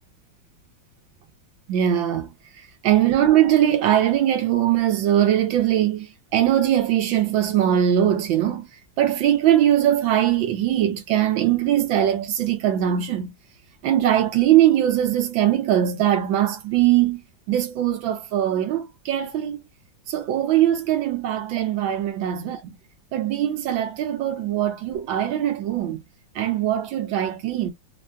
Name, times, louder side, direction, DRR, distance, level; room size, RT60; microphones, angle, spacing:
voice 1, 1.7-2.3 2.8-6.1 6.3-8.7 9.0-13.3 13.8-17.2 17.5-19.6 20.1-22.6 23.1-26.0 26.3-27.7, right 11 dB, 80° right, 1.5 m, -21 dB
3.7 x 2.2 x 2.5 m
omnidirectional pair, 2.1 m